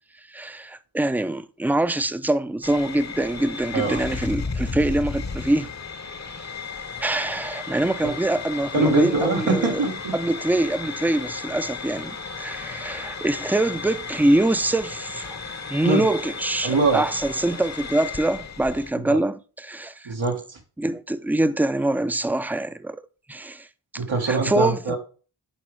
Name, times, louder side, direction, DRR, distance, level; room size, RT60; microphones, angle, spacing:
voice 1, 0.3-5.7 7.0-9.8 10.1-15.4 15.7-20.1 20.8-23.0 23.3-23.7 24.3-25.0, right 1 dB, 5° right, 0.5 m, -24 dB
sound 1, 2.6-18.9, left 4 dB, 35° left, 0.9 m, -34 dB
voice 2, 3.7-4.1 8.7-10.1 15.8-16.0 16.6-17.0 19.0-19.2 20.1-20.6 24.0-25.0, right 3 dB, 85° right, 1.7 m, -23 dB
10.5 x 4.0 x 3.3 m
cardioid pair, 45°, 46 cm